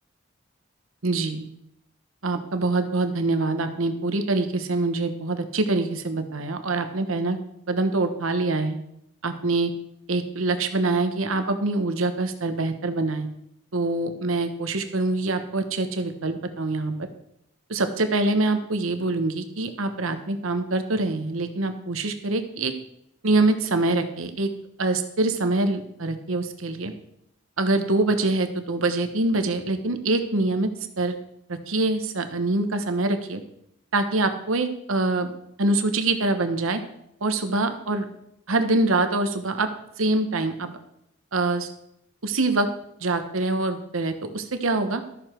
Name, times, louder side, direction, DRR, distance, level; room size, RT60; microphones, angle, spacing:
voice 1, 1.0-1.5 2.2-7.4 7.7-8.8 9.2-9.7 10.1-13.3 13.7-16.9 17.7-22.7 23.2-24.5 24.8-26.9 27.6-30.7 31.0-31.2 31.5-33.4 33.9-35.3 35.6-36.8 37.2-38.0 38.5-39.7 40.0-40.7 41.3-41.7 42.2-42.7 43.0-45.0, right 2 dB, 90° right, 8 dB, 1.1 m, -24 dB
13.0 x 6.9 x 4.5 m, 0.79 s
head